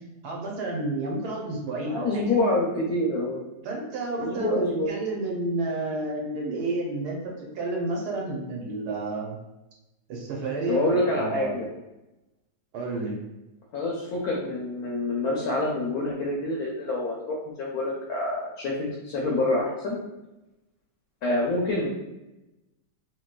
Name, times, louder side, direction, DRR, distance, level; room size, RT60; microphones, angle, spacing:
voice 1, 0.2-2.4 3.6-9.4 10.1-11.6 12.7-13.2, right 2 dB, 70° right, -2 dB, 1.2 m, -31 dB
voice 2, 1.8-3.5 4.2-5.0 10.7-11.7 13.7-20.0 21.2-21.9, left 2 dB, 70° left, -3 dB, 1.0 m, -27 dB
3.0 x 2.9 x 2.2 m, 0.97 s
omnidirectional pair, 1.9 m